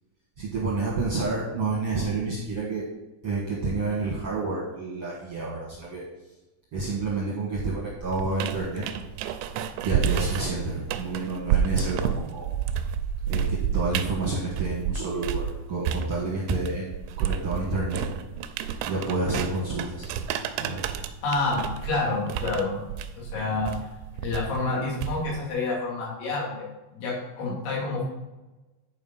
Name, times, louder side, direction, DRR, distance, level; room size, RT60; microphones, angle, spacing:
voice 1, 0.4-2.8 3.2-6.0 6.7-8.8 9.8-12.5 13.3-18.0 18.9-20.1 20.6-20.8, right 3 dB, 60° right, -4 dB, 1.4 m, -29 dB
sound 1, 8.1-15.5 15.8-25.5, right 8 dB, 85° right, 2.9 m, -30 dB
voice 2, 21.2-22.8 23.2-23.7 24.2-26.6 26.9-28.0, left 3 dB, 90° left, -5 dB, 5.2 m, -28 dB
11.0 x 5.0 x 5.6 m, 1.1 s
omnidirectional pair, 5.1 m